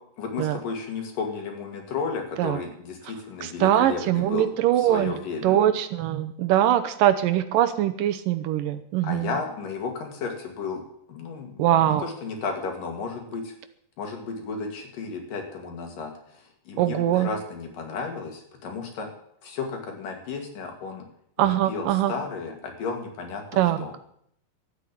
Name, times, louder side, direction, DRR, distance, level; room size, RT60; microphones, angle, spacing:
voice 1, 0.2-4.5 4.8-5.6 9.0-10.8 11.1-13.5 14.0-16.1 16.7-19.1 19.4-21.0 21.4-23.4 23.8-23.9, left 4 dB, 70° left, 2 dB, 3.9 m, -33 dB
voice 2, 3.4-5.1 5.4-9.3 11.6-12.0 16.8-17.3 21.4-22.1 23.5-23.8, right 12 dB, 75° right, 9 dB, 2.4 m, -22 dB
13.0 x 9.0 x 8.6 m, 0.69 s
omnidirectional pair, 4.1 m